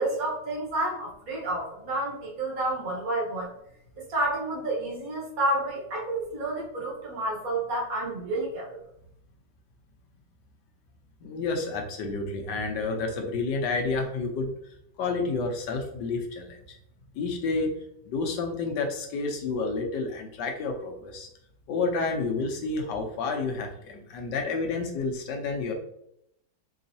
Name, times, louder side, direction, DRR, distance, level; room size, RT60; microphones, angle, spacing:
voice 1, 0.0-3.5 4.1-8.6, right 1 dB, 55° right, -3 dB, 1.5 m, -30 dB
voice 2, 11.2-14.5 15.0-16.8 17.1-17.7 18.1-21.3 21.7-25.7, left 3 dB, 90° left, 3 dB, 1.4 m, -30 dB
3.9 x 3.5 x 2.7 m, 0.75 s
omnidirectional pair, 1.9 m